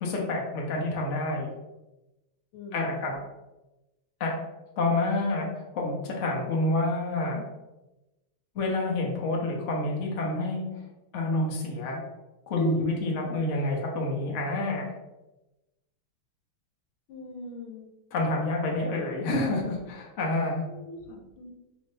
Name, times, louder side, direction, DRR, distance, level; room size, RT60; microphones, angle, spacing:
voice 1, 0.0-1.5 2.7-3.1 4.2-4.3 4.8-7.4 8.5-10.6 11.1-12.0 12.5-14.9 18.1-20.6, left 2 dB, 50° left, -1 dB, 0.9 m, -28 dB
voice 2, 2.5-3.2 12.6-12.8 13.2-13.4 17.1-17.9 20.7-21.5, left 2 dB, 90° left, 3 dB, 1.6 m, -37 dB
5.0 x 2.7 x 3.3 m, 1.0 s
omnidirectional pair, 2.3 m